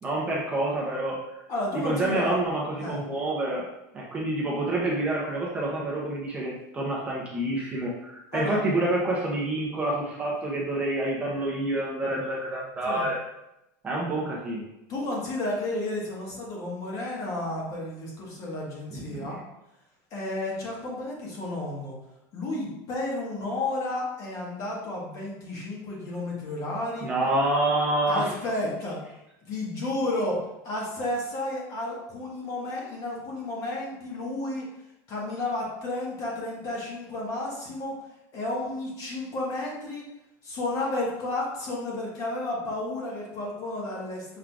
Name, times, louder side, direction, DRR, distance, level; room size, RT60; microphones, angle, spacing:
voice 1, 0.0-1.4 1.8-3.6 3.9-13.2 13.8-14.7 18.9-19.3 27.0-28.3, right 1 dB, 15° right, -4 dB, 0.6 m, -28 dB
voice 2, 1.5-2.4 2.8-3.0 8.3-8.6 12.8-13.1 14.9-19.4 20.1-22.0 22.3-27.1 28.1-29.0 29.5-30.4 30.6-34.7 35.1-37.9 38.3-40.0 40.4-44.4, left 2 dB, 35° left, -3 dB, 1.3 m, -32 dB
5.9 x 3.6 x 2.3 m, 0.88 s
supercardioid pair, 160°, 10 cm